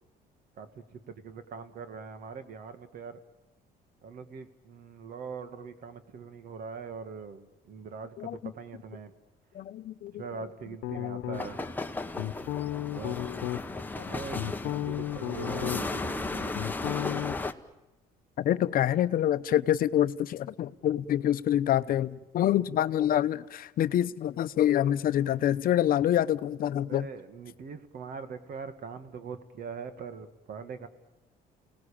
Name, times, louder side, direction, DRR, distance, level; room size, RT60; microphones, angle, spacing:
voice 1, 0.6-3.2 4.0-9.1 10.2-11.6 12.9-13.2 13.9-16.5 26.9-30.9, right 5 dB, 60° right, 10 dB, 2.1 m, -42 dB
voice 2, 8.2-8.5 9.5-10.5 14.0-14.1 18.4-27.1, left 11 dB, 60° left, 13 dB, 0.8 m, -26 dB
sound 1, 10.8-11.7 12.1-13.6 14.1-16.0 16.3-17.3, left 14 dB, 90° left, 1.0 m, -33 dB
sound 2, 11.3-17.5, left 3 dB, 10° left, 1.2 m, -35 dB
29.0 x 19.0 x 8.8 m, 1.0 s
cardioid pair, 110°, 17 cm